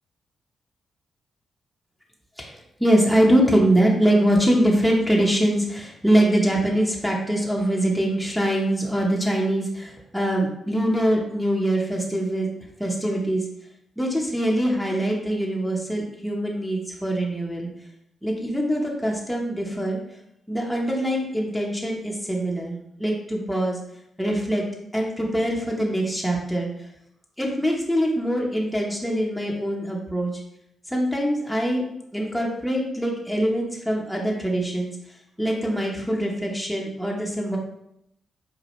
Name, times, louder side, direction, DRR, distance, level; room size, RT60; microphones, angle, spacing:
voice 1, 2.4-12.5 12.8-13.5 14.0-17.7 18.2-20.0 20.5-23.8 24.2-24.6 24.9-26.7 27.4-30.4 30.9-31.8 32.1-34.9 35.4-37.6, right 1 dB, ahead, -2 dB, 0.9 m, -23 dB
4.8 x 2.2 x 3.1 m, 0.77 s
supercardioid pair, 50°, 0 cm